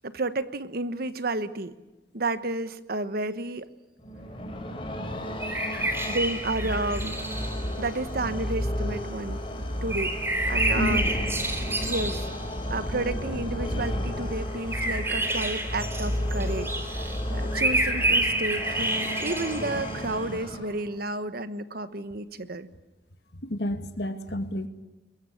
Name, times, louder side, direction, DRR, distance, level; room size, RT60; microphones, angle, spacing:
voice 1, 0.0-1.7 2.1-3.7 6.1-7.2 7.8-9.4 9.8-10.1 10.5-11.0 11.8-12.2 12.7-22.7, right 2 dB, 60° right, 12 dB, 1.2 m, -31 dB
sound 1, 4.0-21.0, equal, 30° left, 5.2 m, -32 dB
sound 2, 5.4-7.7 9.9-12.4 14.5-20.1, right 2 dB, 15° right, 3.7 m, -29 dB
voice 2, 23.4-24.7, left 1 dB, 70° left, 8 dB, 2.1 m, -30 dB
22.5 x 22.5 x 8.6 m, 1.0 s
head